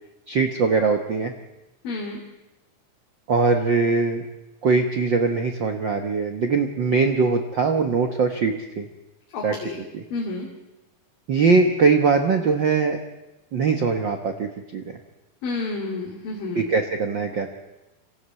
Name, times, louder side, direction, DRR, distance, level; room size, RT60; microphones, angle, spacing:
voice 1, 0.3-1.3 3.3-4.2 4.6-8.9 9.4-9.5 9.9-10.0 11.3-13.0 13.5-14.8 16.5-17.5, right 4 dB, 75° right, 5 dB, 1.0 m, -21 dB
voice 2, 1.8-2.2 9.3-9.8 10.1-10.5 15.4-16.6, left 3 dB, 75° left, -2 dB, 4.3 m, -30 dB
25.5 x 16.0 x 8.2 m, 1.0 s
omnidirectional pair, 4.0 m